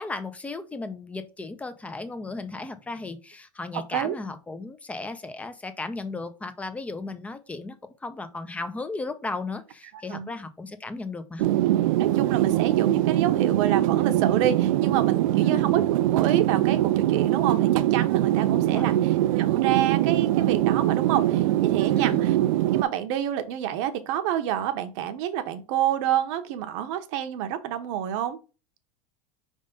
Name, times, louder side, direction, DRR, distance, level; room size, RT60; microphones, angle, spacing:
voice 1, 0.0-7.8 8.0-11.4 15.4-15.6 18.5-19.0 21.9-22.3, left 3 dB, 10° left, 0.6 m, -35 dB
sound 1, 11.4-22.8, right 14 dB, 85° right, 0.6 m, -22 dB
voice 2, 12.0-22.4 22.7-28.4, right 11 dB, 65° right, 0.9 m, -28 dB
5.3 x 3.6 x 5.2 m
supercardioid pair, 150°, 17 cm